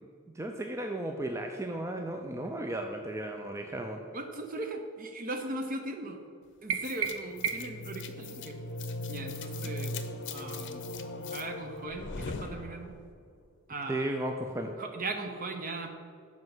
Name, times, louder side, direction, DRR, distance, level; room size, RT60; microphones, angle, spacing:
voice 1, 0.3-4.0 13.9-14.7, right 1 dB, 15° right, 3 dB, 0.4 m, -34 dB
voice 2, 4.1-6.2 6.6-8.6 9.1-9.9 10.3-10.9 11.3-12.9 13.7-14.1 14.8-15.9, right 2 dB, 45° right, 5 dB, 0.9 m, -38 dB
sound 1, 6.7-7.9, right 7 dB, 90° right, 0.5 m, -33 dB
sound 2, 6.8-13.2, left 2 dB, 60° left, 0.7 m, -39 dB
7.5 x 5.4 x 6.0 m, 2.1 s
head